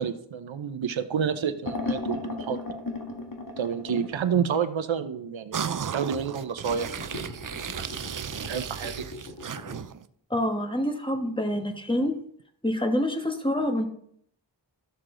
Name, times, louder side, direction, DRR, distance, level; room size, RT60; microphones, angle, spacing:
voice 1, 0.0-2.6 3.6-6.9 8.3-9.0, right 7 dB, 80° right, 9 dB, 0.8 m, -29 dB
sound 1, 1.6-4.3 6.7-9.8, left 2 dB, 45° left, 1.6 m, -36 dB
sound 2, 5.5-10.1, right 7 dB, 45° right, 0.5 m, -35 dB
voice 2, 10.3-12.2 12.6-13.9, left 1 dB, 10° left, 4 dB, 1.4 m, -26 dB
12.5 x 6.7 x 3.8 m, 0.66 s
wide cardioid pair, 55°, 46 cm